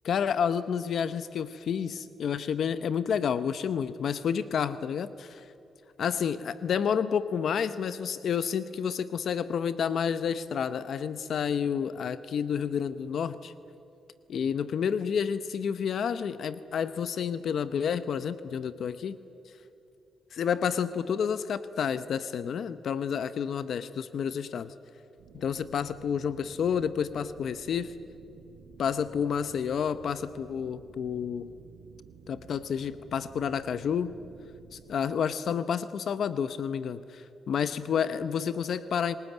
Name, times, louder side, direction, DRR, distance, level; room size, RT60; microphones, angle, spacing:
voice 1, 0.0-5.4 6.0-13.5 14.3-19.2 20.4-24.7 25.3-27.9 28.8-31.5 32.3-34.1 34.7-39.2, left 7 dB, 65° left, 13 dB, 0.8 m, -30 dB
sound 1, 25.2-35.0, right 6 dB, 85° right, 2.0 m, -52 dB
27.5 x 19.5 x 9.1 m, 2.7 s
cardioid pair, 85°, 0 cm